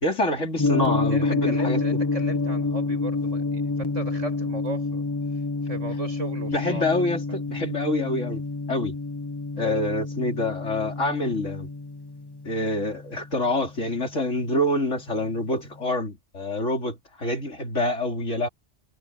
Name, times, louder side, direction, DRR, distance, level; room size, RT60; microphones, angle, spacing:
voice 1, 0.0-1.8 6.5-8.4 8.7-9.0 9.6-11.7 12.4-18.5, left 1 dB, 80° left, 4.1 m, -26 dB
Gong, 0.6-14.8, left 3 dB, 20° left, 1.2 m, -28 dB
voice 2, 1.1-5.0 5.6-7.0 7.3-7.4, right 2 dB, 80° right, 8.4 m, -36 dB
omnidirectional pair, 1.2 m